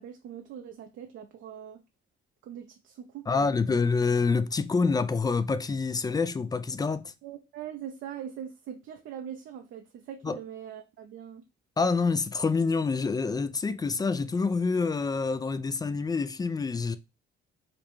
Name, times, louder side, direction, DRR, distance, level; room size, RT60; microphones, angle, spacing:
voice 1, 0.0-1.8 2.4-3.8 7.2-11.4, right 9 dB, 75° right, 0.5 m, -42 dB
voice 2, 3.3-7.1 10.2-10.4 11.8-17.0, left 4 dB, 20° left, 0.3 m, -27 dB
5.0 x 2.1 x 3.1 m
cardioid pair, 90°, 20 cm